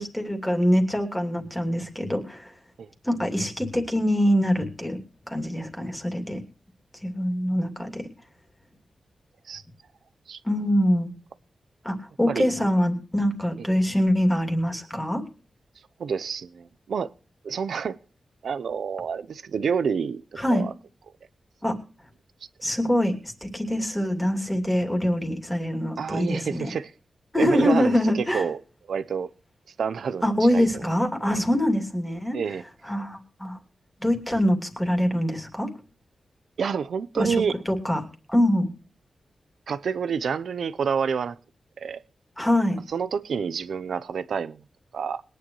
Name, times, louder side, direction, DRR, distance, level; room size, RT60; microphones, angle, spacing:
voice 1, 0.0-2.5 3.0-5.0 5.3-6.4 7.0-8.0 10.4-11.1 11.8-15.2 20.4-20.6 21.6-21.7 22.6-26.7 27.3-28.5 30.2-32.4 32.9-33.6 34.0-35.7 37.2-37.4 37.7-38.0 38.3-38.7 42.4-42.8, equal, 10° left, 2.7 m, -24 dB
voice 2, 16.0-17.1 17.4-18.0 18.4-20.2 20.5-20.7 26.0-26.9 27.4-28.6 28.9-29.3 29.8-30.2 30.5-30.7 32.3-32.6 36.6-37.6 39.7-41.4 41.8-42.0 42.9-44.6 44.9-45.2, right 6 dB, 75° right, 0.7 m, -28 dB
21.5 x 10.0 x 3.1 m
wide cardioid pair, 150°, 0 cm